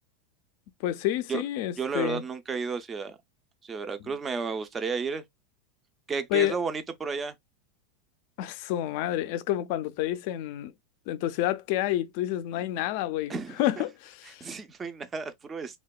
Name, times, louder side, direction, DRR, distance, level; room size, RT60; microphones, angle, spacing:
voice 1, 0.8-2.2 4.0-4.1 6.3-6.6 8.4-10.7 11.1-14.5, left 13 dB, 55° left, 0.3 m, -29 dB
voice 2, 1.8-3.2 3.6-5.2 6.1-7.3 13.3-13.6 14.4-15.8, right 5 dB, 20° right, 0.4 m, -32 dB
2.7 x 2.2 x 2.2 m
supercardioid pair, 145°, 0 cm